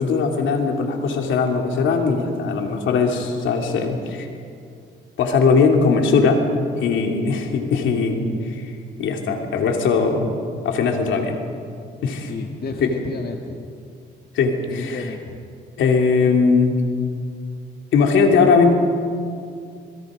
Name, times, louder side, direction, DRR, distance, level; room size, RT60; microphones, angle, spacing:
voice 1, 0.0-4.3 5.2-6.4 6.8-8.7 9.0-10.4 10.6-11.4 12.0-12.3 12.8-12.9 14.3-15.1 15.8-16.8 17.9-18.7, left 4 dB, 75° left, 3 dB, 3.1 m, -19 dB
voice 2, 12.3-13.6 14.7-15.4, left 4 dB, 50° left, 3 dB, 1.7 m, -32 dB
27.5 x 22.5 x 5.2 m, 2.4 s
cardioid pair, 90°, 20 cm